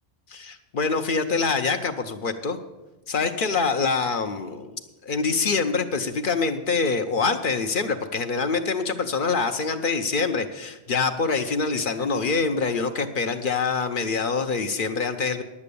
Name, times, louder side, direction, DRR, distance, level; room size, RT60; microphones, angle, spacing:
voice 1, 0.3-2.6 3.1-15.4, left 4 dB, 55° left, 7 dB, 0.8 m, -25 dB
10.5 x 8.4 x 6.8 m, 1.1 s
omnidirectional pair, 1.1 m